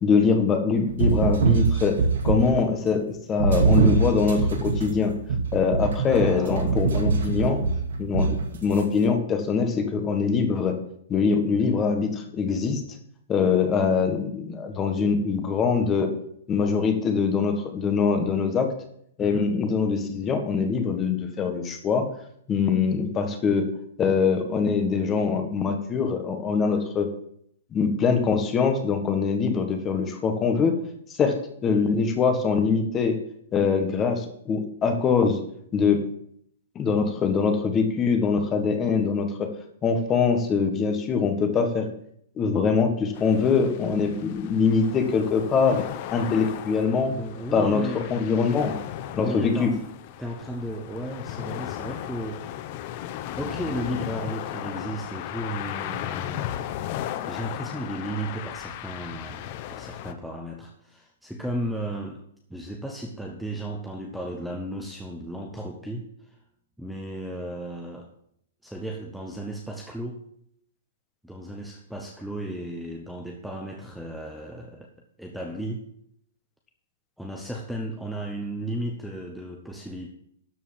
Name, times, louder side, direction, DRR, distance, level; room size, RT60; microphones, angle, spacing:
voice 1, 0.0-2.0 2.2-5.1 5.5-7.6 8.0-10.8 11.1-12.8 13.3-16.1 16.5-18.7 19.2-22.1 22.5-23.7 24.0-27.1 27.7-30.7 31.2-31.3 31.6-33.2 33.5-35.4 35.7-36.0 36.7-39.5 39.8-41.9 42.4-45.8 46.1-47.1 47.5-48.7 49.2-49.7, left 5 dB, 20° left, 5 dB, 1.4 m, -23 dB
sound 1, 0.9-2.7 3.4-8.8, right 4 dB, 80° right, 2.1 m, -23 dB
voice 2, 6.1-6.8 19.2-19.5 46.3-46.5 47.0-48.2 49.1-49.9 50.2-52.6 53.3-56.5 57.2-62.2 62.5-66.4 66.8-68.1 68.6-70.2 71.2-74.9 75.2-75.9 77.2-80.1, right 1 dB, ahead, 1 dB, 0.9 m, -34 dB
sound 2, 43.1-60.1, left 12 dB, 40° left, 0.8 m, -36 dB
12.5 x 4.6 x 7.4 m, 0.69 s
hypercardioid pair, 155°, 0 cm